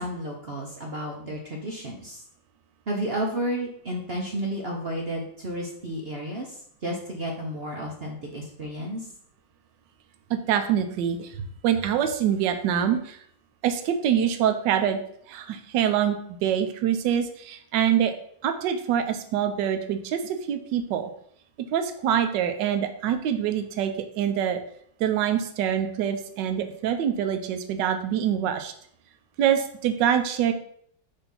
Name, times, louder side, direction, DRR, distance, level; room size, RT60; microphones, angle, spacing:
voice 1, 0.0-2.2 2.9-9.1, right 1 dB, 50° right, -1 dB, 0.7 m, -32 dB
voice 2, 10.3-11.3 11.6-13.2 13.6-15.0 15.3-18.1 18.4-21.1 21.7-24.6 25.0-28.7 29.4-30.5, right 9 dB, 75° right, 7 dB, 1.3 m, -25 dB
6.9 x 2.8 x 5.4 m, 0.65 s
omnidirectional pair, 2.1 m